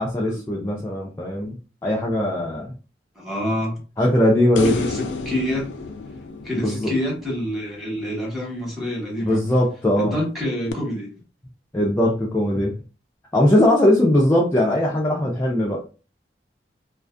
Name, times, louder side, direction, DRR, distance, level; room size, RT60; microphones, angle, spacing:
voice 1, 0.0-2.7 4.0-4.8 6.6-6.9 9.2-10.2 11.7-12.7 13.3-15.9, left 1 dB, 15° left, 0.4 m, -20 dB
voice 2, 3.2-3.8 4.6-5.7 6.4-9.4 10.0-11.1, left 1 dB, ahead, 1.0 m, -27 dB
sound 1, 4.5-7.9 10.7-10.8, left 3 dB, 90° left, 0.4 m, -31 dB
2.4 x 2.3 x 2.4 m
head